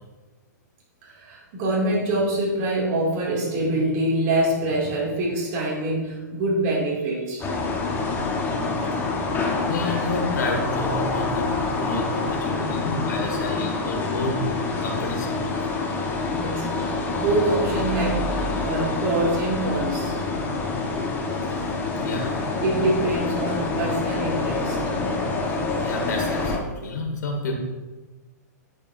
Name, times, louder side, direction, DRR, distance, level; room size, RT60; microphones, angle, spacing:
voice 1, 1.0-7.5 12.2-12.6 13.0-14.0 16.3-20.2 22.6-24.8, right 2 dB, 45° right, -4 dB, 2.2 m, -25 dB
sound 1, 7.4-26.6, left 3 dB, 20° left, 1.1 m, -26 dB
voice 2, 9.7-14.4 14.8-15.4 22.0-22.3 25.8-27.5, left 2 dB, 75° left, 1 dB, 1.9 m, -30 dB
10.5 x 4.8 x 2.6 m, 1.2 s
hypercardioid pair, 130°, 10 cm